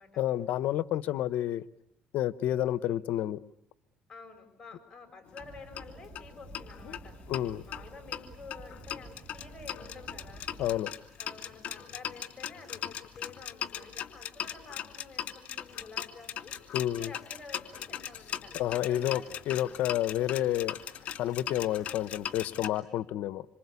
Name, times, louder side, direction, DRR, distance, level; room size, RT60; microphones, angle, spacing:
voice 1, 0.2-1.6 2.1-3.4 6.8-7.0 7.3-7.6 10.6-10.9 16.7-17.1 18.5-20.7 21.2-23.5, left 12 dB, 70° left, 16 dB, 1.0 m, -30 dB
voice 2, 4.1-7.2 7.6-10.5 11.2-16.5 16.9-19.7, left 4 dB, 20° left, 4 dB, 6.6 m, -50 dB
sound 1, 5.3-5.4 5.8-5.9 6.2-6.3 6.5-7.4 7.7-22.7, left 10 dB, 50° left, 2.8 m, -39 dB
Fire, 5.4-10.8, right 1 dB, 10° right, 3.2 m, -50 dB
27.0 x 26.0 x 8.4 m, 0.79 s
cardioid pair, 115°, 3 cm